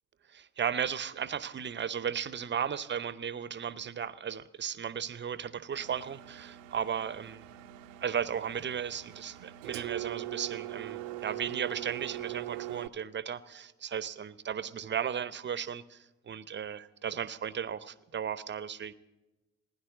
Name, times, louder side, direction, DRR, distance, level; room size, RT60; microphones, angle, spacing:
voice 1, 0.3-7.4 8.0-18.9, right 8 dB, 30° right, 18 dB, 0.7 m, -35 dB
Engine, 5.7-12.9, right 15 dB, 75° right, 0.6 m, -41 dB
16.0 x 10.5 x 7.4 m, 1.1 s
figure-of-eight pair, 45°, 38 cm